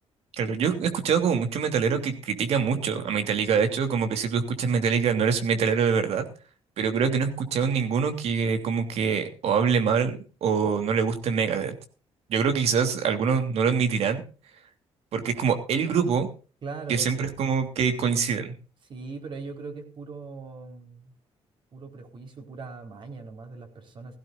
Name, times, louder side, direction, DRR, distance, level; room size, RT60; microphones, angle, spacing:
voice 1, 0.3-6.2 6.8-11.8 12.3-14.2 15.1-16.3 16.9-18.5, right 6 dB, 70° right, 7 dB, 3.0 m, -25 dB
voice 2, 16.6-17.3 18.9-21.1 21.7-24.2, right 4 dB, 50° right, 4 dB, 4.4 m, -40 dB
17.0 x 16.5 x 2.5 m, 0.36 s
cardioid pair, 125°, 11 cm